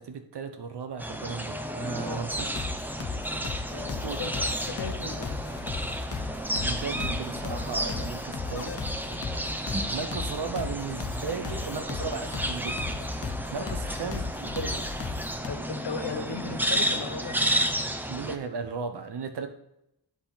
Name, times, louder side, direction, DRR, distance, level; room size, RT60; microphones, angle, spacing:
voice 1, 0.0-2.5 4.0-4.2 6.6-9.0 9.9-12.8 13.5-15.0 18.1-19.5, right 5 dB, 85° right, 8 dB, 0.9 m, -36 dB
sound 1, 1.0-18.4, right 1 dB, 5° right, 0.5 m, -32 dB
voice 2, 2.0-2.4 3.7-5.5 13.6-13.7 15.5-17.4, left 5 dB, 85° left, 7 dB, 1.0 m, -37 dB
sound 2, 2.3-15.5, left 5 dB, 35° left, 0.6 m, -36 dB
10.5 x 4.1 x 4.1 m, 0.83 s
wide cardioid pair, 175°, 40 cm